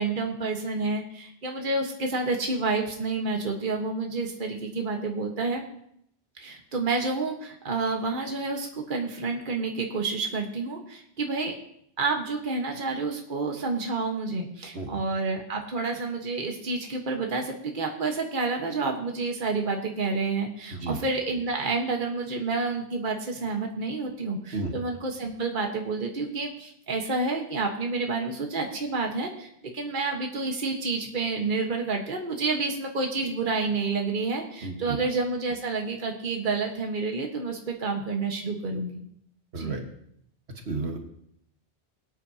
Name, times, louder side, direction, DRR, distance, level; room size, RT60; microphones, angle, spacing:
voice 1, 0.0-5.6 6.4-11.5 12.0-39.0 39.6-39.8, right 3 dB, 50° right, 2 dB, 1.5 m, -29 dB
voice 2, 34.6-35.0 39.5-39.8 40.7-41.0, right 3 dB, 75° right, 3 dB, 1.7 m, -32 dB
22.5 x 9.0 x 2.8 m, 0.71 s
omnidirectional pair, 1.1 m